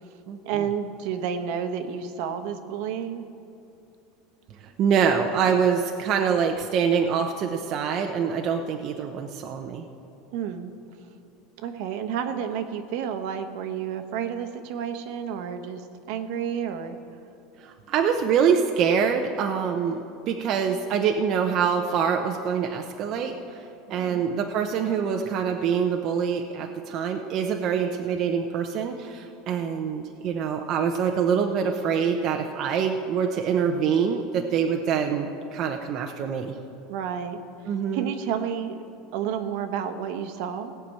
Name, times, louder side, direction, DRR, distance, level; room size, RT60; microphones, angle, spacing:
voice 1, 0.4-3.3 10.3-10.7 11.6-17.0 23.9-24.2 36.9-38.8 39.1-40.7, right 8 dB, 65° right, 7 dB, 1.1 m, -31 dB
voice 2, 4.6-9.9 17.6-23.6 23.9-36.6 37.7-38.1, right 7 dB, 40° right, 3 dB, 0.8 m, -25 dB
17.5 x 6.0 x 8.4 m, 2.6 s
supercardioid pair, 145°, 0 cm